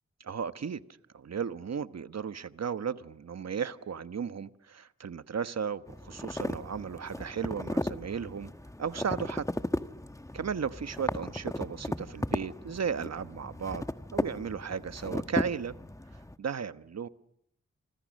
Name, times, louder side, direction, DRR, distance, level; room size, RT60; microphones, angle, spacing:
voice 1, 0.2-0.8 1.1-8.5 8.8-9.5 10.3-13.8 14.1-15.7 16.4-17.1, right 7 dB, 60° right, 12 dB, 1.2 m, -35 dB
sound 1, 5.9-16.3, left 1 dB, 10° left, 1.4 m, -36 dB
28.0 x 26.0 x 6.5 m, 0.76 s
cardioid pair, 45°, 30 cm